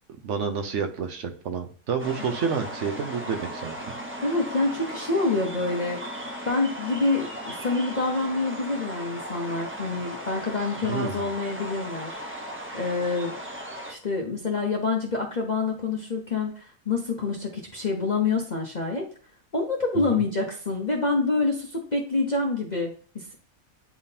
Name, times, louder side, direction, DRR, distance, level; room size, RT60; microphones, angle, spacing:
voice 1, 0.2-3.9 10.8-11.2 19.9-20.2, right 6 dB, 55° right, 5 dB, 1.0 m, -29 dB
sound 1, 2.0-13.9, equal, 15° right, 0.4 m, -37 dB
voice 2, 4.2-13.4 13.9-19.1 19.5-23.3, left 3 dB, 35° left, -1 dB, 0.7 m, -27 dB
9.7 x 3.6 x 2.8 m, 0.43 s
omnidirectional pair, 1.7 m